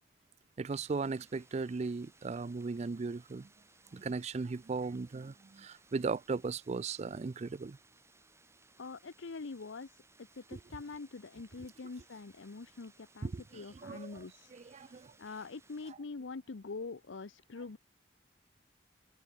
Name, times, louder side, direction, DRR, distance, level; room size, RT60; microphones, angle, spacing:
voice 1, 0.6-3.5 3.9-7.8 10.5-10.6 13.2-14.2 14.5-15.1, right 4 dB, 35° right, 0.4 m, -37 dB
sound 1, 0.7-15.9, right 3 dB, 15° right, 7.2 m, -65 dB
voice 2, 8.8-17.8, left 4 dB, 80° left, 0.7 m, -45 dB
head